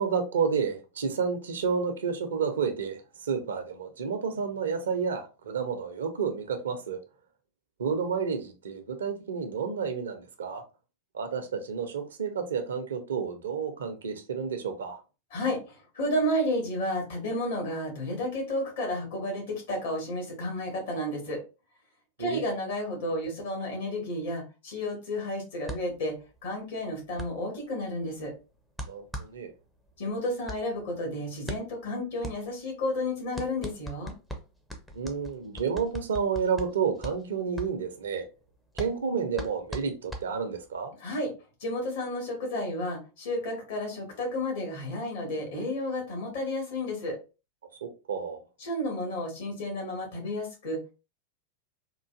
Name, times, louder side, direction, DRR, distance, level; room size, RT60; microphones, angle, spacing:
voice 1, 0.0-7.0 7.8-10.6 11.1-15.0 22.2-22.4 28.9-29.5 34.9-38.3 38.8-40.9 47.8-48.4, right 6 dB, 65° right, 0.7 m, -30 dB
voice 2, 15.3-21.4 22.2-26.1 26.4-28.3 30.0-34.1 41.0-41.3 41.6-47.2 48.6-50.9, left 1 dB, 60° left, 1.6 m, -32 dB
sound 1, 25.6-40.8, equal, 5° left, 0.6 m, -41 dB
3.8 x 2.5 x 2.4 m
figure-of-eight pair, 90°, 0 cm